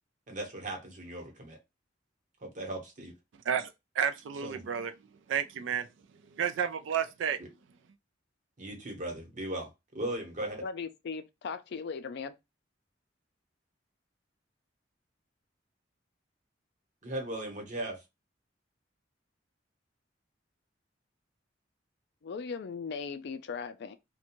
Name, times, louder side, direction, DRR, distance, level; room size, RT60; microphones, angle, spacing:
voice 1, 0.3-1.6 2.4-3.1 4.4-4.6 7.4-7.5 8.6-10.6 17.0-18.0, right 1 dB, 45° right, 1.0 m, -38 dB
voice 2, 3.4-4.9 5.3-5.9 6.3-7.4, right 8 dB, 80° right, 0.3 m, -31 dB
voice 3, 10.6-12.3 22.2-24.0, left 5 dB, 60° left, 0.4 m, -38 dB
2.5 x 2.2 x 2.9 m
head